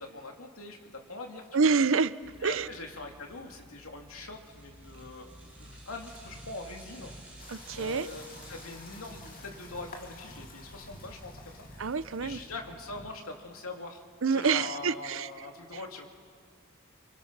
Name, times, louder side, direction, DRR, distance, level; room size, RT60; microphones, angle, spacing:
voice 1, 0.0-1.7 2.4-7.1 7.7-11.7 12.2-14.0 14.3-16.1, left 2 dB, 80° left, 2 dB, 2.6 m, -43 dB
voice 2, 1.5-2.2 2.4-2.7 7.5-8.1 11.8-12.4 14.2-15.3, right 5 dB, 65° right, 15 dB, 0.6 m, -27 dB
sound 1, 2.2-13.2, equal, 25° right, 1.2 m, -52 dB
sound 2, 4.4-11.6 11.9-12.0, right 2 dB, 5° right, 4.3 m, -54 dB
sound 3, 7.4-12.6, left 3 dB, 40° left, 2.2 m, -51 dB
27.5 x 26.0 x 6.0 m, 2.1 s
head